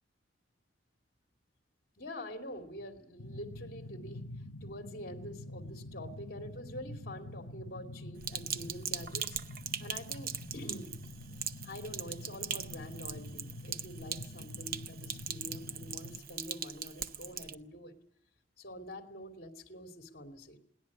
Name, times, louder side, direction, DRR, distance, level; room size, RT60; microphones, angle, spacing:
voice 1, 2.0-9.4 9.8-10.9 11.6-17.9 18.6-20.6, equal, 55° left, 4 dB, 2.7 m, -46 dB
sound 1, 3.2-16.2, left 1 dB, 85° left, 1.1 m, -46 dB
Sink (filling or washing), 8.2-17.5, right 8 dB, 50° right, 0.8 m, -40 dB
21.5 x 18.0 x 8.6 m, 0.72 s
head